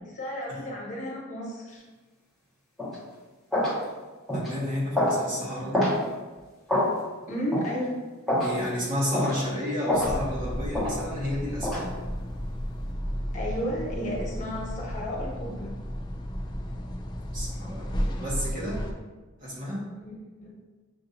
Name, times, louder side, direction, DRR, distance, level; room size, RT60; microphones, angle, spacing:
voice 1, 0.0-1.8 7.3-8.0 13.3-15.7 20.0-20.1 20.4-20.5, equal, 40° left, -4 dB, 1.2 m, -33 dB
sound 1, 2.8-2.9 3.5-3.8 4.3-4.5 4.9-5.2 5.7-6.0 6.7-6.9 7.5-7.7 8.3-8.5 9.1-9.4 9.9-10.1 10.7-10.9 11.6-11.8, left 1 dB, ahead, 1.1 m, -25 dB
voice 2, 4.3-5.9 8.4-11.9 17.3-17.9 18.2-18.8 19.4-19.9, left 1 dB, 40° right, -6 dB, 1.4 m, -31 dB
sound 2, 9.9-18.9, equal, 20° left, 0.4 m, -33 dB
6.6 x 2.7 x 2.7 m, 1.3 s
head